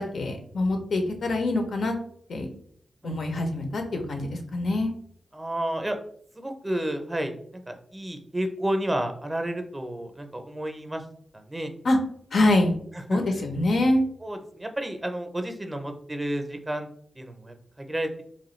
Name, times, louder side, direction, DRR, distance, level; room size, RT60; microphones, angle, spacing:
voice 1, 0.0-1.9 2.3-2.5 3.0-4.9 11.8-12.0 12.3-12.7 13.1-14.0, left 2 dB, 70° left, 4 dB, 0.6 m, -24 dB
voice 2, 5.3-6.0 6.3-11.0 11.3-11.7 13.1-13.2 14.2-16.9 17.2-18.2, right 1 dB, 20° right, 6 dB, 0.5 m, -31 dB
2.9 x 2.3 x 3.1 m, 0.63 s
cardioid pair, 55°, 0 cm